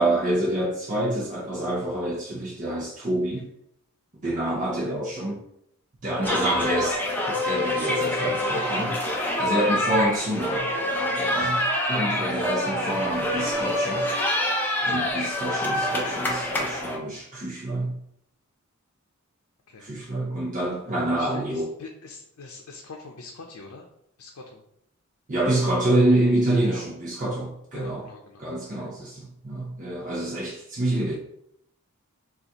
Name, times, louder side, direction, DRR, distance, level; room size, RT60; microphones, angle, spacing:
voice 1, 0.0-3.5 4.2-5.4 6.0-7.0 7.3-10.7 11.2-14.1 14.8-18.0 19.8-21.7 25.3-28.0 28.4-31.1, right 1 dB, 35° right, -5 dB, 0.7 m, -27 dB
sound 1, 6.2-17.0, left 1 dB, 10° left, 0.6 m, -26 dB
voice 2, 14.8-15.3 19.7-19.9 21.2-23.9 24.2-24.6 26.6-26.9 27.7-28.4 28.7-28.9, left 3 dB, 85° left, 1 dB, 0.6 m, -43 dB
6.5 x 2.5 x 2.9 m, 0.76 s
head